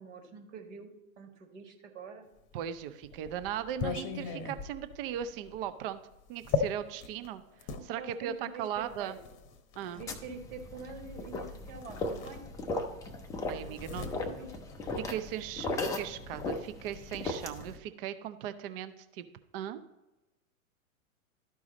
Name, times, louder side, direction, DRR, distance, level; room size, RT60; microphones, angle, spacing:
voice 1, 0.0-2.3 8.0-9.1 9.9-12.5 13.5-14.6, right 4 dB, 60° right, 4 dB, 1.7 m, -46 dB
sound 1, 2.5-7.9 8.8-10.1 11.3-11.5 11.8-12.9 13.2-15.4, left 6 dB, 30° left, 0.9 m, -38 dB
voice 2, 2.5-6.0 6.3-7.4 7.8-9.2 9.8-10.0 13.5-14.1 15.1-19.2 19.5-19.8, right 10 dB, 40° right, 12 dB, 0.6 m, -38 dB
sound 2, 10.1-17.8, left 2 dB, 10° left, 0.4 m, -37 dB
12.0 x 4.8 x 4.0 m, 1.0 s
figure-of-eight pair, 105°, 42 cm